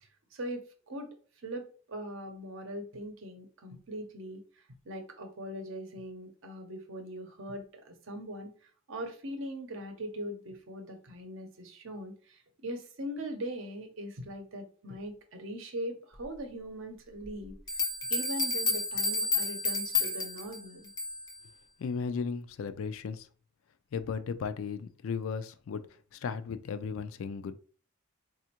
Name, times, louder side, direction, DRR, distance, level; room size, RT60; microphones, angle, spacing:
voice 1, 0.3-1.1 1.4-4.4 4.9-8.5 8.9-17.6 18.1-20.9, equal, 60° right, 6 dB, 0.7 m, -40 dB
sound 1, 17.2-17.3 17.7-21.4, left 3 dB, 20° left, 0.6 m, -31 dB
voice 2, 21.8-23.2 23.9-25.8 26.2-27.6, left 5 dB, 70° left, 11 dB, 0.3 m, -35 dB
4.1 x 2.4 x 2.8 m, 0.42 s
head